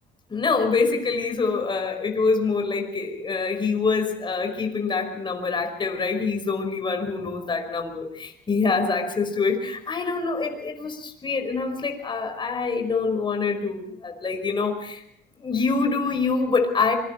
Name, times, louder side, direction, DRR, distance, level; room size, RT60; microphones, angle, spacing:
voice 1, 0.3-15.0 15.4-16.9, left 4 dB, 30° left, 5 dB, 5.3 m, -25 dB
26.0 x 22.5 x 4.6 m, 0.76 s
cardioid pair, 110°, 17 cm